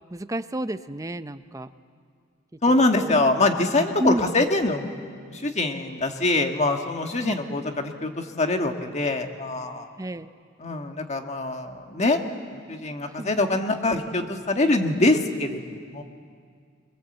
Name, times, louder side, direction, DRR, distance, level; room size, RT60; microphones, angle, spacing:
voice 1, 0.1-1.7 3.0-3.2 4.0-4.3 7.2-7.3 10.0-10.3 13.1-13.6, right 1 dB, 15° right, 12 dB, 0.6 m, -30 dB
voice 2, 2.6-5.0 5.3-9.9 10.6-12.2 12.7-16.0, left 2 dB, 35° left, 5 dB, 1.6 m, -24 dB
23.5 x 21.5 x 7.9 m, 2.1 s
head